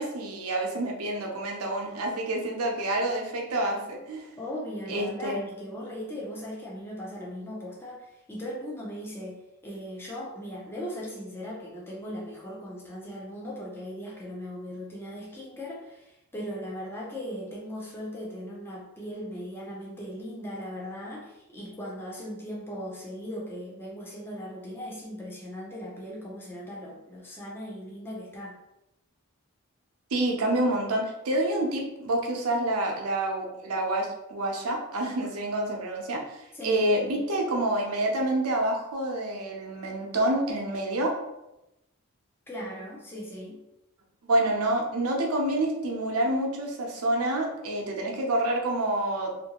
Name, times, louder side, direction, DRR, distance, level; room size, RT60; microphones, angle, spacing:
voice 1, 0.0-4.3 4.9-5.5 30.1-41.1 44.2-49.3, right 1 dB, 85° right, 0 dB, 0.6 m, -28 dB
voice 2, 4.4-28.6 36.5-36.9 42.5-43.6, equal, 10° left, -5 dB, 0.5 m, -38 dB
2.7 x 2.5 x 2.9 m, 0.91 s
head